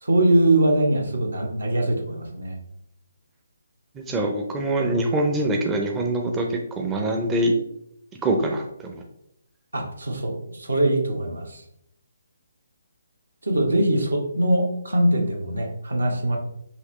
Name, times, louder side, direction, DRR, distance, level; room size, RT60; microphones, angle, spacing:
voice 1, 0.0-2.6 9.7-11.6 13.4-16.4, right 1 dB, 75° right, 2 dB, 1.1 m, -22 dB
voice 2, 4.0-6.5 6.8-7.5 8.2-8.6 8.9-9.0, right 1 dB, 15° right, 1 dB, 0.5 m, -24 dB
5.7 x 2.9 x 3.1 m, 0.77 s
figure-of-eight pair, 140°, 0 cm